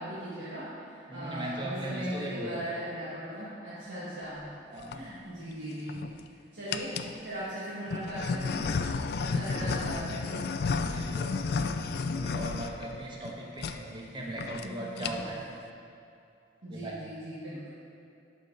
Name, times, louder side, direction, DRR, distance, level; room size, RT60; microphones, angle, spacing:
voice 1, 0.0-4.4 4.9-6.0 6.5-6.9 7.2-8.8 9.2-10.5 14.6-15.2 16.6-17.7, right 1 dB, 75° right, -12 dB, 2.1 m, -38 dB
voice 2, 1.1-2.7 4.7-5.0 9.3-9.8 10.8-11.8 12.1-15.5 16.7-17.0, right 1 dB, 25° right, -2 dB, 1.0 m, -39 dB
sound 1, 4.6-5.0 5.7-6.2 6.7-7.2 7.9-13.3 13.6-13.8 14.1-14.2 14.4-14.7 14.9-15.4, left 4 dB, 60° left, 0.4 m, -32 dB
11.5 x 5.1 x 4.1 m, 2.6 s
head